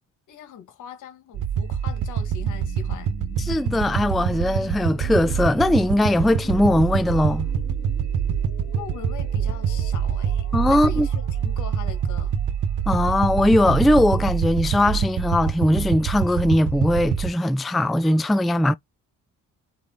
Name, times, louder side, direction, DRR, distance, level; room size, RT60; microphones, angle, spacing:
voice 1, 0.3-3.1 8.7-12.3, left 8 dB, 80° left, 1.9 m, -41 dB
sound 1, 1.3-17.3, right 8 dB, 80° right, 1.2 m, -25 dB
sound 2, 2.2-14.0, left 9 dB, 50° left, 1.8 m, -44 dB
voice 2, 3.5-7.5 10.5-11.1 12.9-18.7, left 1 dB, ahead, 0.3 m, -20 dB
8.6 x 3.2 x 3.9 m
cardioid pair, 90°, 30 cm